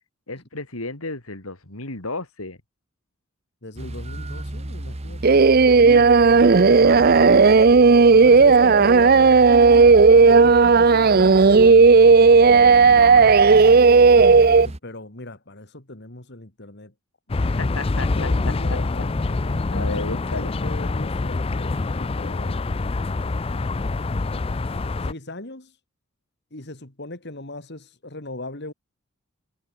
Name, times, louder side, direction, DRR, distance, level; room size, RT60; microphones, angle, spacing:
voice 1, 0.3-2.6 5.6-7.8 12.5-13.5 17.4-18.8 19.3-20.5, left 3 dB, 90° left, 4.2 m, -34 dB
voice 2, 3.6-5.4 5.8-6.1 8.1-9.7 10.1-11.8 14.2-16.9 17.6-17.8 18.2-22.6 25.0-25.7 26.5-28.7, left 2 dB, 55° left, 2.8 m, -38 dB
sound 1, 3.8-14.8, right 1 dB, 30° right, 1.2 m, -36 dB
Singing, 5.2-14.7, right 4 dB, 45° right, 0.6 m, -13 dB
sound 2, 17.3-25.1, left 3 dB, 25° left, 0.4 m, -25 dB
head